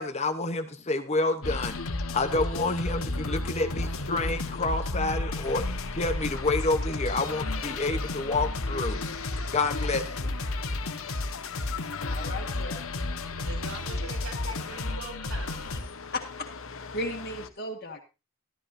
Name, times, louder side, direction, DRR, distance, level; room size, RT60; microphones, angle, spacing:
voice 1, 0.0-1.8 2.1-5.6 5.9-9.0 9.5-10.3, left 2 dB, 30° left, 1.0 m, -28 dB
sound 1, 1.4-15.8, left 2 dB, 90° left, 1.4 m, -32 dB
sound 2, 3.7-4.9 5.4-15.0 15.3-17.5, left 5 dB, 70° left, 1.0 m, -43 dB
voice 2, 12.0-12.9 16.1-16.5 16.9-18.0, left 1 dB, 45° left, 1.8 m, -35 dB
voice 3, 13.4-15.8, right 3 dB, 90° right, 6.5 m, -42 dB
14.0 x 13.0 x 2.7 m
head